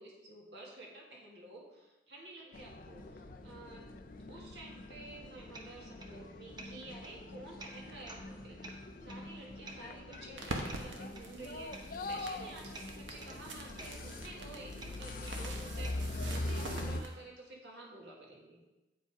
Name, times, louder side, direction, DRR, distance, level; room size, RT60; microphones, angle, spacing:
voice 1, 0.0-3.9 4.3-18.6, right 2 dB, 60° right, -2 dB, 1.9 m, -51 dB
sound 1, 2.5-17.0, left 2 dB, 45° left, 0.5 m, -43 dB
sound 2, 5.0-16.1, right 2 dB, 25° right, 0.8 m, -54 dB
sound 3, 10.4-17.1, right 2 dB, 80° right, 1.2 m, -45 dB
8.5 x 5.4 x 4.8 m, 1.0 s
head